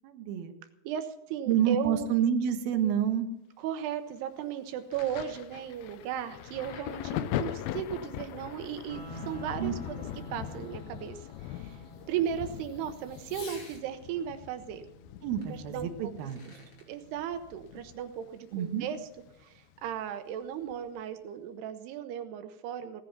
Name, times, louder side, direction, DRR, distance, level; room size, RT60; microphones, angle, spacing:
voice 1, 0.0-0.5 1.5-3.3 9.6-9.7 15.2-16.4 18.5-18.9, right 9 dB, 75° right, 5 dB, 3.1 m, -28 dB
voice 2, 0.8-2.1 3.6-10.0 10.3-11.8 12.1-14.9 15.7-16.1 16.9-19.0 19.4-23.0, right 9 dB, 90° right, 8 dB, 3.0 m, -36 dB
Thunder, 4.9-18.3 18.5-19.9 20.7-20.9, left 12 dB, 75° left, 2.4 m, -41 dB
Fireworks, 5.3-13.9 15.4-15.5 16.0-16.9, left 3 dB, 35° left, 3.1 m, -56 dB
sound 1, 8.9-18.9, right 3 dB, 15° left, 4.1 m, -52 dB
17.5 x 11.0 x 5.8 m, 0.87 s
omnidirectional pair, 4.6 m